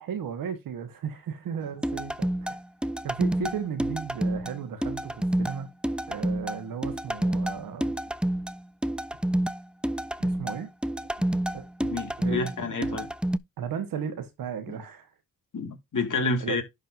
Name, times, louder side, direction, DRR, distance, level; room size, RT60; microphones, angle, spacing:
voice 1, 0.0-2.6 3.0-5.7 6.1-7.9 10.2-10.7 11.2-11.3 11.5-11.6 12.2-13.1 13.6-15.1 16.4-16.6, right 7 dB, 90° right, 1.2 m, -35 dB
sound 1, 1.8-13.4, right 1 dB, 5° right, 0.4 m, -29 dB
voice 2, 11.8-13.1 15.5-16.6, left 3 dB, 65° left, 2.0 m, -29 dB
11.0 x 4.1 x 2.6 m
supercardioid pair, 40°, 33 cm